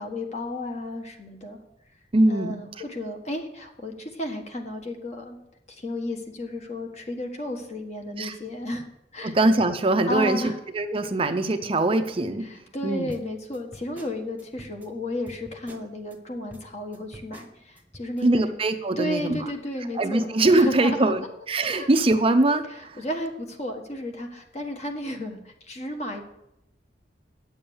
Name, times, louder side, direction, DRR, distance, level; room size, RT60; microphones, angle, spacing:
voice 1, 0.0-1.6 2.3-5.4 5.7-8.9 9.1-9.3 10.1-10.5 11.2-11.3 12.4-18.6 19.0-21.1 21.8-21.9 23.0-26.2, left 1 dB, 40° left, 4 dB, 1.5 m, -33 dB
voice 2, 2.1-2.7 8.2-8.4 9.2-13.1 18.2-19.5 19.9-23.0, right 2 dB, 30° right, 8 dB, 0.6 m, -22 dB
sound 1, 13.1-16.2 16.5-18.2, equal, 10° right, 1.0 m, -48 dB
9.5 x 7.1 x 7.0 m, 0.84 s
head